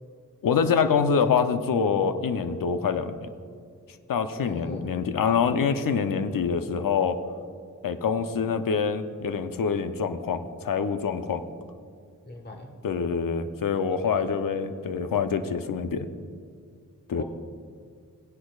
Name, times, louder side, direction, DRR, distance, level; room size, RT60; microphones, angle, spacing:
voice 1, 0.4-3.3 4.1-7.2 7.8-11.4 12.8-16.1 17.1-17.2, left 6 dB, 80° left, 10 dB, 0.7 m, -25 dB
voice 2, 4.4-4.8 12.2-12.7 14.2-14.3 17.1-17.2, left 1 dB, 30° left, 3 dB, 1.5 m, -39 dB
16.5 x 10.0 x 2.4 m, 2.2 s
cardioid pair, 40°, 33 cm